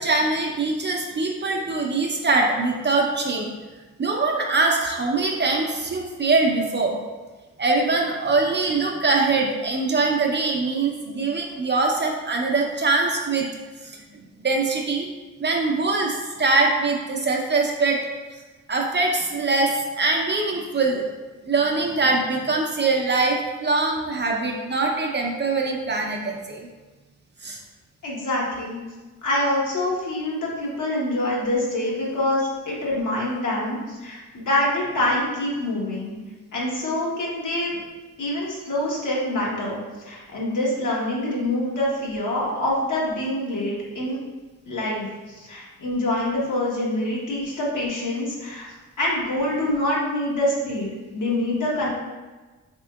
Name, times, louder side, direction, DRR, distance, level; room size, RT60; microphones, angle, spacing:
voice 1, 0.0-3.5 4.0-6.9 7.6-13.5 13.8-14.0 14.4-15.1 15.4-18.0 18.7-21.0 21.4-26.7 27.4-27.6, right 3 dB, 30° right, 0 dB, 0.6 m, -23 dB
voice 2, 28.0-28.8 29.2-36.2 36.5-37.8 38.2-39.8 40.0-44.2 44.7-48.7 49.0-51.9, left 1 dB, 60° left, -4 dB, 1.2 m, -25 dB
3.6 x 3.4 x 2.3 m, 1.2 s
cardioid pair, 65°, 34 cm